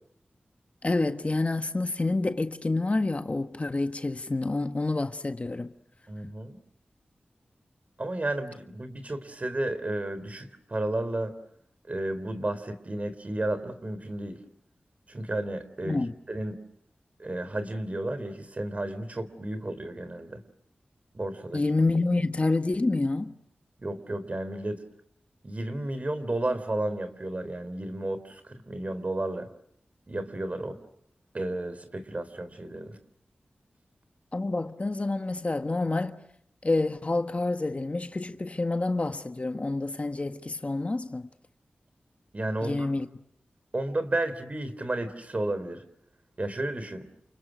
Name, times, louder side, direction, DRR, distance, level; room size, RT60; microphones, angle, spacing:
voice 1, 0.8-5.7 15.8-16.1 21.5-23.4 34.3-36.2 36.6-41.3 42.6-43.1, left 2 dB, 40° left, 1.5 m, -28 dB
voice 2, 6.1-6.6 8.0-11.3 11.9-14.4 15.1-16.6 17.2-20.4 21.1-21.6 23.8-24.8 25.4-29.5 30.1-30.8 31.3-33.0 42.3-42.9 43.7-45.8 46.4-47.1, right 1 dB, 45° right, 3.7 m, -32 dB
30.0 x 29.0 x 6.3 m
cardioid pair, 50°, 3 cm